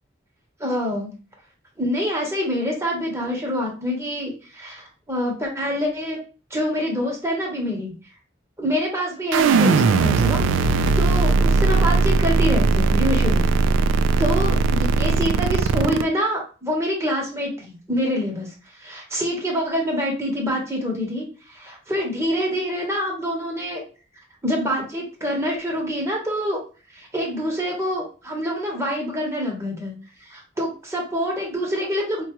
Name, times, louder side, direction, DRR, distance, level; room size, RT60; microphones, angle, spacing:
voice 1, 0.6-1.1 1.8-4.8 5.1-6.2 6.5-8.0 8.6-13.5 14.2-18.5 18.8-23.8 24.4-26.6 26.9-29.9 30.3-32.2, equal, 15° right, -1 dB, 0.9 m, -26 dB
sound 1, 9.3-16.0, right 4 dB, 80° right, 0.3 m, -18 dB
4.4 x 2.3 x 2.9 m, 0.36 s
head